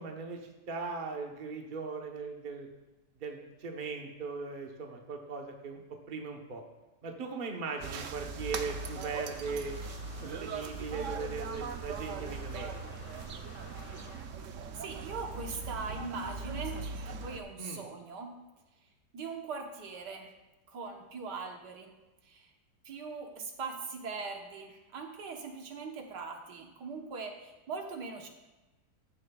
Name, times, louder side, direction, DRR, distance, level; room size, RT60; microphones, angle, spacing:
voice 1, 0.0-2.7 3.2-5.8 6.1-6.6 7.0-9.8 10.2-13.0 17.6-17.8, right 4 dB, 35° right, 2 dB, 1.1 m, -39 dB
sound 1, 7.8-17.4, right 4 dB, 60° right, 0.8 m, -40 dB
sound 2, 8.4-14.5, left 5 dB, 75° left, 1.4 m, -53 dB
voice 2, 14.7-16.8 17.1-18.3 19.1-20.3 20.7-21.9 22.2-22.5 22.9-28.3, right 4 dB, 75° right, 2 dB, 1.8 m, -41 dB
14.5 x 10.5 x 2.4 m, 1.1 s
omnidirectional pair, 1.8 m